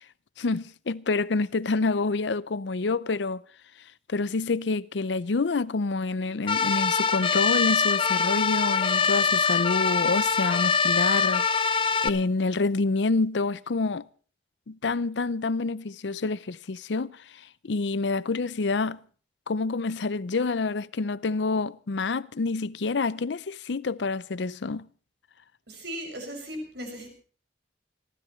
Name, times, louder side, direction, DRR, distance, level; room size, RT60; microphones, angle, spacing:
voice 1, 0.4-3.4 4.1-14.0 14.7-19.0 19.5-24.9, left 3 dB, 85° left, 0.6 m, -28 dB
sound 1, 6.5-12.1, left 5 dB, 30° left, 0.6 m, -23 dB
voice 2, 25.7-27.1, equal, 70° right, 6.3 m, -37 dB
28.0 x 13.0 x 3.2 m
head